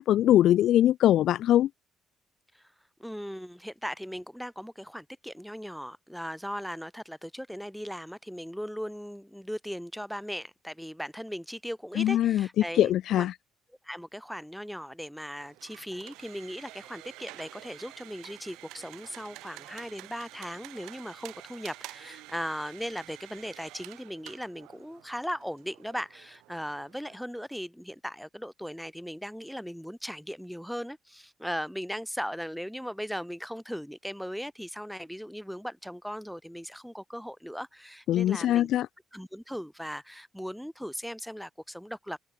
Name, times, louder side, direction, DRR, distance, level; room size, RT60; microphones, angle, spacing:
voice 1, 0.0-1.7 12.0-12.5 12.7-13.3 38.1-38.9, left 12 dB, 60° left, 0.3 m, -22 dB
voice 2, 3.0-13.3 13.8-38.7 39.1-42.2, equal, ahead, 5.3 m, -38 dB
sound 1, 15.4-27.2, right 19 dB, 70° right, 1.7 m, -49 dB
figure-of-eight pair, 45°, 0 cm